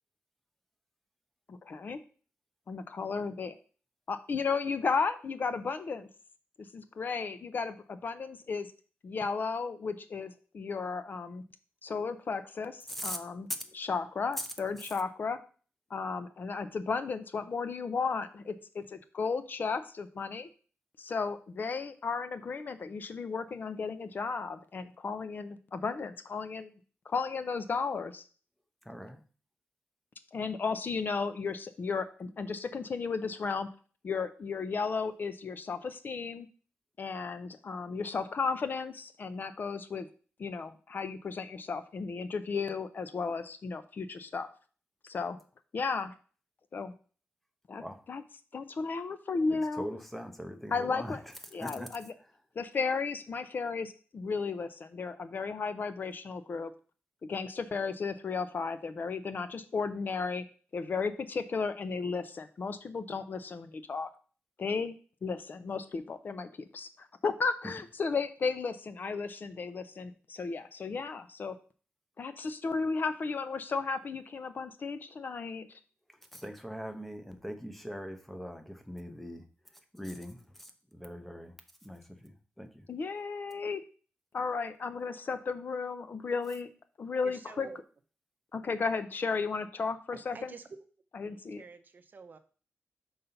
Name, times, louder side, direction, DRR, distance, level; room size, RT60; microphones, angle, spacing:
voice 1, 1.5-2.0 2.7-3.6 4.1-6.1 6.7-8.7 9.0-11.4 11.8-13.5 13.7-15.4 15.9-20.5 21.0-26.7 27.1-28.2 30.3-33.7 34.0-36.5 37.0-40.1 40.4-44.5 45.0-45.4 45.7-46.1 46.7-46.9 47.7-47.8 48.1-48.2 48.5-49.9 50.7-51.2 51.5-52.1 52.6-56.7 57.3-60.4 60.7-64.1 64.6-65.0 65.2-71.5 72.2-75.7 82.9-83.8 84.3-86.7 87.0-87.7 88.5-90.5 91.1-91.6, left 4 dB, 50° left, 11 dB, 0.5 m, -34 dB
voice 2, 28.8-29.2 47.8-48.0 49.5-51.2 51.6-51.9 76.3-79.4 79.9-81.6 81.8-82.9, equal, 5° left, 7 dB, 0.7 m, -41 dB
voice 3, 87.2-87.8 90.1-90.7 91.3-92.4, right 4 dB, 45° right, 9 dB, 0.6 m, -49 dB
5.4 x 4.0 x 5.6 m, 0.40 s
wide cardioid pair, 165°, 4 cm